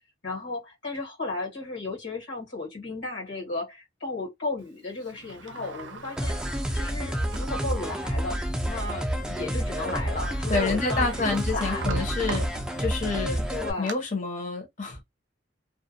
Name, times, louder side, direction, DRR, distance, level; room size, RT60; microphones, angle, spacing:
voice 1, 0.2-11.8 13.5-13.9, left 3 dB, 70° left, 1.3 m, -34 dB
Sliding door, 5.0-7.6 8.2-8.3 9.6-9.7 9.9-13.1 13.5-13.9, right 4 dB, 70° right, 0.5 m, -40 dB
sound 1, 6.2-13.7, equal, 5° right, 0.4 m, -29 dB
voice 2, 10.5-12.5 12.8-13.4 13.8-15.0, left 3 dB, 40° left, 0.8 m, -28 dB
2.4 x 2.1 x 2.6 m
head